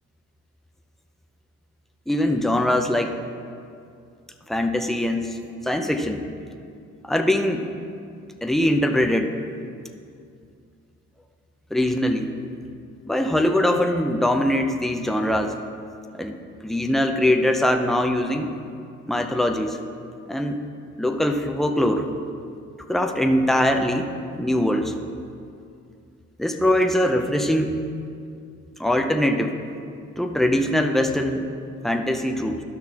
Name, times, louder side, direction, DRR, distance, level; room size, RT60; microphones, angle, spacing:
voice 1, 2.1-3.2 4.5-6.2 7.0-7.6 8.4-9.4 11.7-12.3 13.1-15.6 16.2-16.3 16.6-18.5 19.1-19.8 20.3-20.6 21.0-22.1 22.9-24.9 26.4-27.8 28.8-29.5 30.2-31.5 31.8-32.6, left 1 dB, ahead, 4 dB, 0.6 m, -22 dB
12.5 x 6.1 x 2.9 m, 2.4 s
cardioid pair, 90°, 30 cm